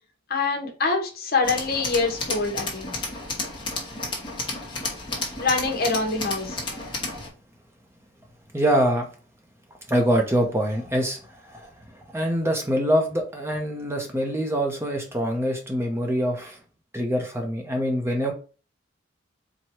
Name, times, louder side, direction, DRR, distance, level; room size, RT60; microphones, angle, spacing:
voice 1, 0.3-2.9 5.4-6.6, left 3 dB, 50° left, 2 dB, 1.0 m, -25 dB
Tools, 1.4-7.3, left 3 dB, 25° left, 1.2 m, -32 dB
voice 2, 8.5-9.1 9.9-16.6 16.9-18.3, equal, 15° right, 2 dB, 0.7 m, -25 dB
4.5 x 2.2 x 4.4 m, 0.37 s
head